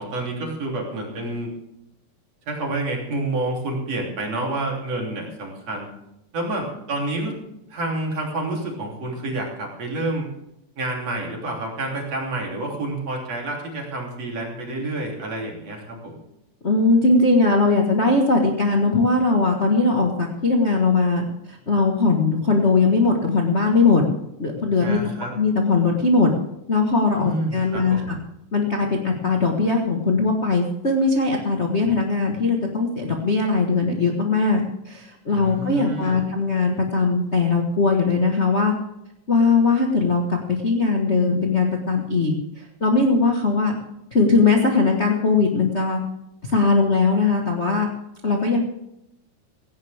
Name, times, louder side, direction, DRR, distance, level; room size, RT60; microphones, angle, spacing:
voice 1, 0.0-1.5 2.5-5.9 6.3-7.4 7.7-10.3 10.8-16.2 24.8-25.3 27.2-28.1 35.3-36.3, right 2 dB, 50° right, -1 dB, 4.2 m, -29 dB
voice 2, 16.6-24.0 24.4-25.0 25.3-26.3 26.7-28.2 28.5-38.7 39.3-42.3 42.8-43.7 44.1-46.0 46.4-47.9 48.2-48.6, left 3 dB, 45° left, 1 dB, 0.8 m, -20 dB
17.0 x 16.0 x 3.5 m, 0.83 s
omnidirectional pair, 3.9 m